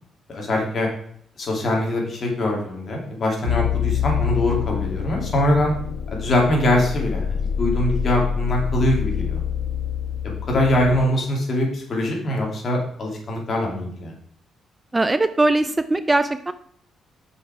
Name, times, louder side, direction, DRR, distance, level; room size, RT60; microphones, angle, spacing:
voice 1, 0.3-0.9 1.4-5.7 6.1-9.4 10.2-14.1, left 1 dB, 50° left, 0 dB, 2.5 m, -23 dB
sound 1, 3.5-11.1, left 8 dB, 90° left, 0.5 m, -26 dB
voice 2, 14.9-16.5, right 2 dB, 15° right, 12 dB, 0.4 m, -20 dB
6.3 x 5.3 x 4.7 m, 0.64 s
cardioid pair, 90°, 0 cm